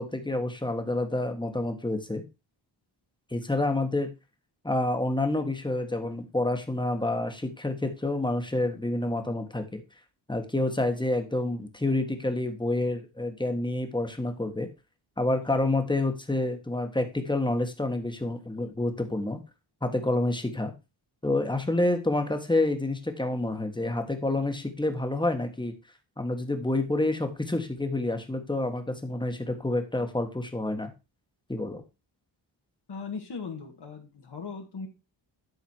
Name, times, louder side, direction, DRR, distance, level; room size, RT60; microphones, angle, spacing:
voice 1, 0.0-2.2 3.3-4.1 4.6-9.8 10.3-14.7 15.2-19.4 19.8-20.7 21.2-25.7 26.2-30.9 31.5-31.8, left 2 dB, 10° left, 6 dB, 1.6 m, -28 dB
voice 2, 32.9-34.9, left 5 dB, 60° left, 2 dB, 2.0 m, -38 dB
11.0 x 4.0 x 4.6 m, 0.27 s
cardioid pair, 80°, 45 cm